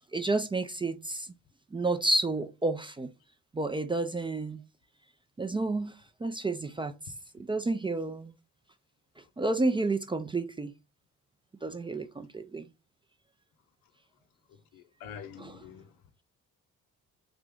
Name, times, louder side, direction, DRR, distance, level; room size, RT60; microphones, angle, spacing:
voice 1, 0.1-1.3 1.7-3.1 3.5-4.6 5.4-5.9 6.2-6.9 7.3-8.3 9.4-10.7 11.6-12.7 15.4-15.6, right 2 dB, 15° right, 0.3 m, -30 dB
voice 2, 14.7-15.9, left 8 dB, 75° left, 0.6 m, -45 dB
3.3 x 2.4 x 3.5 m
supercardioid pair, 60°, 36 cm